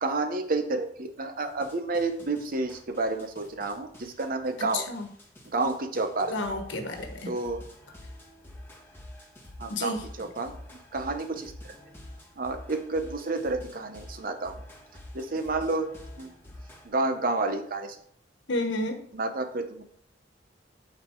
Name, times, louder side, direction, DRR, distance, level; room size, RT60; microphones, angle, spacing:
voice 1, 0.0-4.9 5.5-6.3 7.3-7.6 9.6-10.6 10.9-11.7 12.4-14.6 15.1-15.9 16.2-16.3 16.8-18.0 19.1-19.8, right 3 dB, 50° right, 7 dB, 0.8 m, -30 dB
sound 1, 1.5-16.9, left 1 dB, 15° left, 1.9 m, -47 dB
voice 2, 4.6-5.1 6.3-7.3 9.7-10.0 18.5-19.0, left 2 dB, 85° left, 5 dB, 1.2 m, -31 dB
8.6 x 4.1 x 4.5 m, 0.64 s
head